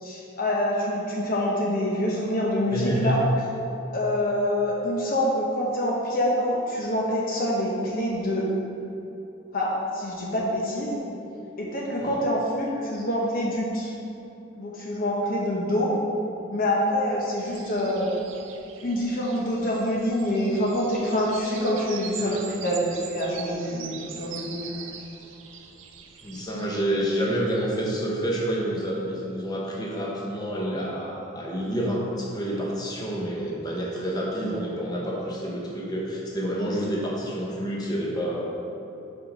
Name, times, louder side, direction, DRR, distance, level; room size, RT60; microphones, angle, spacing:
voice 1, 0.0-3.2 3.9-8.5 9.5-11.0 11.6-13.9 14.6-15.9 16.5-18.1 18.8-24.8, left 1 dB, 45° left, -3 dB, 0.9 m, -26 dB
voice 2, 2.7-3.2 12.0-12.2 22.2-22.4 26.2-38.4, equal, 20° left, -4 dB, 1.1 m, -28 dB
sound 1, 17.4-26.8, right 7 dB, 80° right, 0.6 m, -42 dB
5.6 x 5.5 x 5.0 m, 2.9 s
head